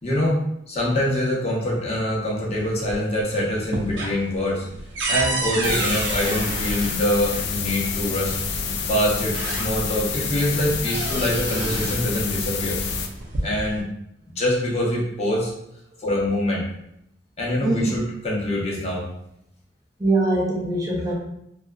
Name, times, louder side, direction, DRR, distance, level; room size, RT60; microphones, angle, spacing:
voice 1, 0.0-4.6 5.1-8.4 8.9-12.8 13.4-13.9 14.3-15.5 16.0-16.6 17.4-19.1, left 1 dB, 35° left, -4 dB, 0.7 m, -24 dB
sound 1, 2.6-3.2 3.5-7.5 8.6-8.7 9.1-10.1 10.4-12.1 13.0-13.8, right 2 dB, 75° right, 0.5 m, -30 dB
sound 2, 5.6-13.1, left 4 dB, 65° left, 0.3 m, -28 dB
voice 2, 17.6-17.9 20.0-21.1, right 2 dB, 20° right, -2 dB, 0.5 m, -22 dB
2.8 x 2.2 x 2.2 m, 0.78 s
head